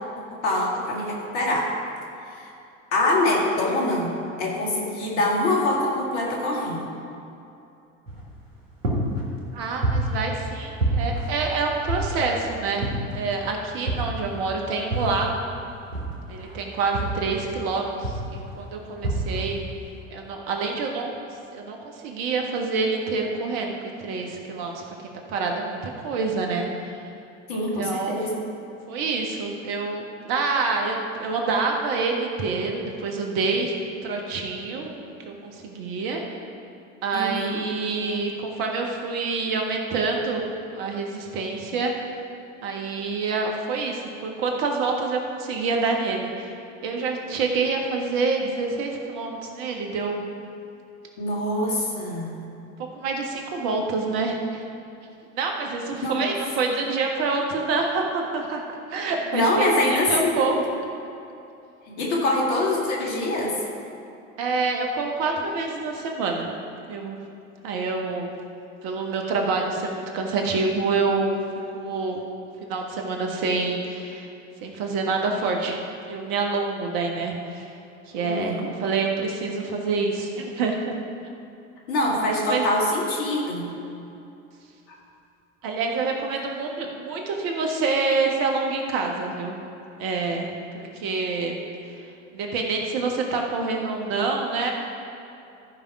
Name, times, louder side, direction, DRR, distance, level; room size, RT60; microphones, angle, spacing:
voice 1, 0.4-1.7 2.3-2.5 2.9-4.1 4.4-6.8 27.5-28.4 37.1-37.6 51.2-52.4 56.0-56.2 59.3-60.4 61.9-63.6 78.2-78.7 81.9-83.7, left 1 dB, 65° left, -2 dB, 2.3 m, -24 dB
sound 1, 8.1-8.5 8.8-10.5 10.8-12.4 12.8-13.4 13.9-15.4 15.9-17.7 18.0-18.5 19.0-19.6, right 1 dB, 90° right, 1.5 m, -28 dB
voice 2, 9.5-15.4 16.3-19.7 20.1-23.7 24.0-27.0 27.5-28.3 28.9-33.7 34.0-34.9 35.2-36.2 37.0-41.9 42.6-46.5 46.8-50.3 52.9-54.6 55.3-58.6 58.9-60.6 64.4-66.5 66.9-67.2 67.6-68.3 68.8-71.4 71.7-72.2 72.6-74.3 74.6-75.8 76.1-77.7 78.1-81.0 82.0-82.6 85.6-89.6 90.0-91.6 91.9-92.0 92.3-94.7, right 4 dB, 55° right, 1 dB, 1.5 m, -27 dB
14.5 x 5.3 x 4.9 m, 2.7 s
figure-of-eight pair, 70°, 37 cm